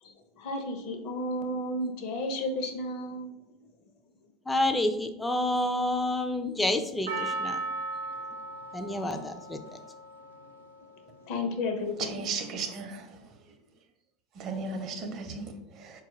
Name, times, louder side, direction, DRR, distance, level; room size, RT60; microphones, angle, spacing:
voice 1, 0.0-3.4 11.3-12.2, left 1 dB, 60° left, 5 dB, 0.7 m, -33 dB
voice 2, 4.5-7.6 8.7-9.6, left 1 dB, 10° left, 7 dB, 0.4 m, -28 dB
Percussion, 7.1-11.4 12.1-12.2, right 2 dB, 90° right, 0.4 m, -37 dB
voice 3, 12.0-13.1 14.4-16.0, right 4 dB, 45° right, 6 dB, 0.6 m, -35 dB
4.3 x 2.3 x 3.1 m, 0.87 s
hypercardioid pair, 85°, 0 cm